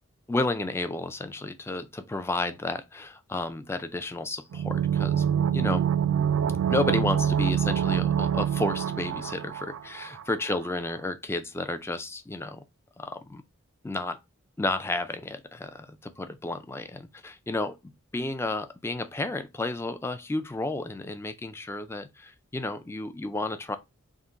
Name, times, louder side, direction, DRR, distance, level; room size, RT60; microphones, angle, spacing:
voice 1, 0.3-5.2 5.5-5.9 6.7-12.6 13.0-13.4 13.8-14.2 14.6-23.8, left 2 dB, 10° left, 0.3 m, -32 dB
sound 1, 4.5-10.2 10.5-10.6, right 9 dB, 75° right, 0.3 m, -25 dB
3.6 x 2.4 x 3.9 m
head